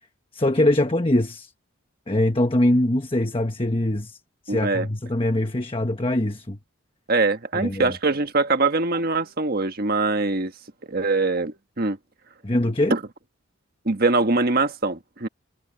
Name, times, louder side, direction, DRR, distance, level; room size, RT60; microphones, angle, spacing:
voice 1, 0.3-1.5 2.1-4.2 4.5-6.6 7.5-7.9 12.4-12.9, left 1 dB, 25° left, 1.2 m, -22 dB
voice 2, 4.5-4.9 7.1-10.5 10.9-12.0 12.9-13.0 13.8-15.3, right 3 dB, 45° right, 1.5 m, -23 dB
head